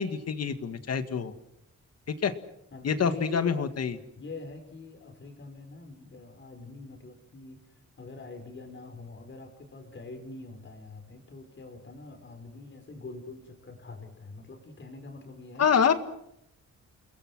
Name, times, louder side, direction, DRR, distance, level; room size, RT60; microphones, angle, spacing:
voice 1, 0.0-1.3 2.1-2.3 2.8-4.0 15.6-15.9, left 6 dB, 55° left, 10 dB, 1.9 m, -26 dB
voice 2, 2.7-3.7 4.2-7.6 8.0-15.7, left 3 dB, 40° left, 6 dB, 5.4 m, -44 dB
29.5 x 21.5 x 6.3 m, 0.78 s
wide cardioid pair, 140°, 30 cm